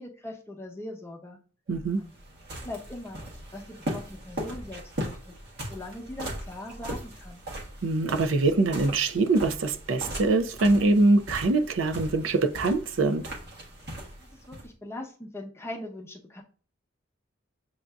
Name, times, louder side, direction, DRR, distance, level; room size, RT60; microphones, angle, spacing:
voice 1, 0.0-1.4 2.0-2.2 2.6-3.2 3.5-5.3 5.7-7.4 14.2-16.4, left 1 dB, 15° left, 0.7 m, -41 dB
sound 1, 1.7-14.7, equal, 55° right, 1.3 m, -39 dB
voice 2, 1.7-2.0 7.8-13.3, right 2 dB, 75° right, 0.5 m, -23 dB
7.3 x 2.6 x 2.3 m
head